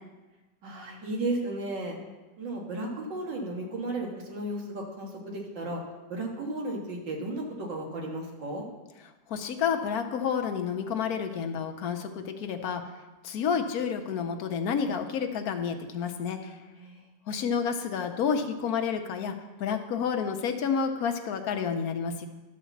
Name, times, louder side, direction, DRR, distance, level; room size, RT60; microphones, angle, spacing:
voice 1, 0.6-2.0 2.4-5.8 6.1-8.7 16.8-17.0, right 2 dB, 85° right, -1 dB, 2.4 m, -34 dB
voice 2, 9.3-12.8 13.2-16.5 17.3-19.3 19.6-22.3, left 6 dB, 60° left, 6 dB, 1.2 m, -30 dB
12.0 x 4.3 x 7.1 m, 1.2 s
omnidirectional pair, 1.9 m